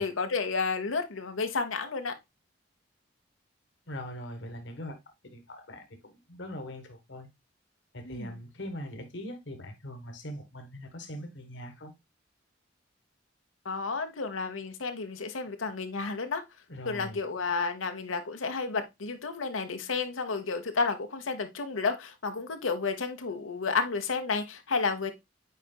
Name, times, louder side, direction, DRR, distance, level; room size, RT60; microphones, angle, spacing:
voice 1, 0.0-2.1 8.0-8.3 13.6-16.4 16.8-25.1, left 4 dB, 85° left, 1.0 m, -31 dB
voice 2, 3.9-5.0 5.3-7.3 7.9-11.9 16.7-17.2, equal, 65° left, 1.4 m, -41 dB
8.3 x 5.0 x 2.2 m
head